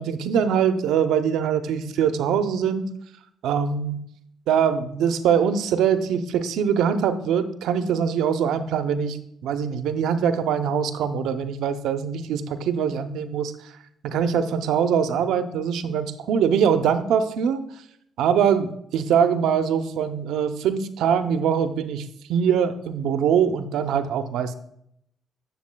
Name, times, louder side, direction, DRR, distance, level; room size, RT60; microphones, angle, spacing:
voice 1, 0.0-2.8 3.4-4.0 4.5-13.7 14.0-17.6 18.2-24.5, right 7 dB, 85° right, 10 dB, 0.5 m, -23 dB
10.5 x 7.1 x 2.2 m, 0.73 s
cardioid pair, 90°, 0 cm